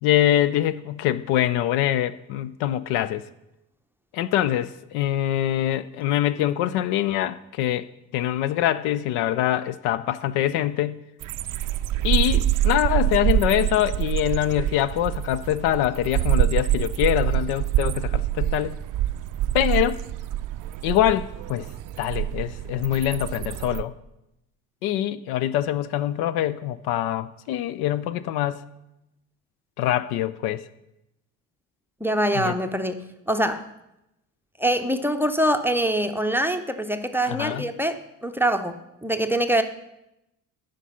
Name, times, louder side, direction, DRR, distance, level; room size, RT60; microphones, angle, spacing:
voice 1, 0.0-3.2 4.1-7.9 8.1-11.0 12.0-18.8 19.5-20.0 20.8-21.7 22.0-23.9 24.8-28.6 29.8-30.6 32.3-32.5 37.3-37.7, left 12 dB, 60° left, 0.5 m, -24 dB
sound 1, 11.2-23.8, right 13 dB, 45° right, 0.5 m, -25 dB
voice 2, 32.0-33.7 34.6-38.8 39.0-39.6, right 1 dB, 5° right, 0.6 m, -24 dB
9.9 x 5.1 x 5.6 m
figure-of-eight pair, 50°, 44 cm